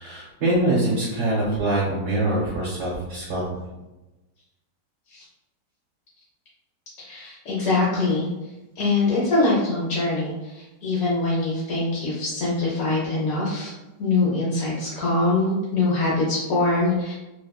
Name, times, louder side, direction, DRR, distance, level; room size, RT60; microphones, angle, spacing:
voice 1, 0.0-3.4, right 1 dB, 55° right, -7 dB, 1.0 m, -24 dB
voice 2, 7.0-8.3 8.8-13.7 14.0-17.1, left 2 dB, 65° left, -6 dB, 1.0 m, -23 dB
2.9 x 2.3 x 2.3 m, 1.0 s
omnidirectional pair, 1.9 m